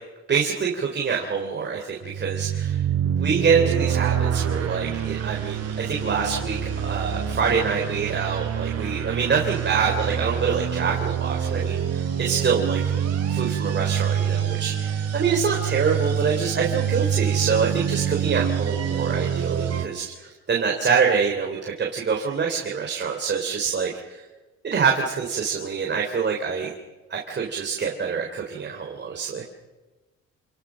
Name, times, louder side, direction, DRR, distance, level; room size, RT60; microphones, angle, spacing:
voice 1, 0.3-2.8 3.2-12.8 13.3-24.2 24.6-26.7 27.1-29.4, right 6 dB, 35° right, 0 dB, 3.7 m, -25 dB
sound 1, 2.0-19.9, right 8 dB, 55° right, 4.2 m, -26 dB
29.0 x 29.0 x 6.4 m, 1.2 s
cardioid pair, 130°, 29 cm